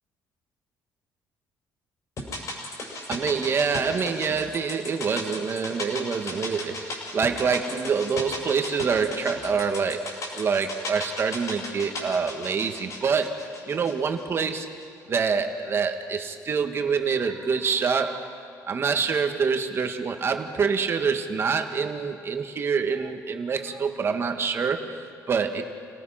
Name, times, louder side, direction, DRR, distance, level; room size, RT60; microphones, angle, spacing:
sound 1, 2.2-14.5 14.8-14.9, left 2 dB, 55° left, 6.6 m, -36 dB
voice 1, 3.1-14.7 15.1-25.6, right 5 dB, 40° right, 6 dB, 1.8 m, -26 dB
29.5 x 18.0 x 5.9 m, 2.4 s
cardioid pair, 115°, 7 cm